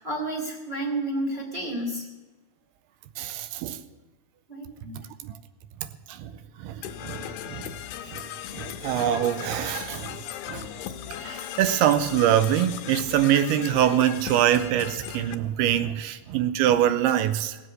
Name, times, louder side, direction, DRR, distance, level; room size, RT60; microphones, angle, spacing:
voice 1, 0.0-2.1 4.5-5.0, right 1 dB, 15° right, 2.3 m, -31 dB
voice 2, 3.2-3.8 5.2-5.3 6.1-6.3 6.6-7.7 8.1-8.2 8.5-10.7 11.2-17.6, right 11 dB, 85° right, 2.6 m, -24 dB
Percussion / Brass instrument, 6.8-15.3, left 11 dB, 80° left, 2.6 m, -37 dB
17.0 x 7.8 x 7.8 m
omnidirectional pair, 4.6 m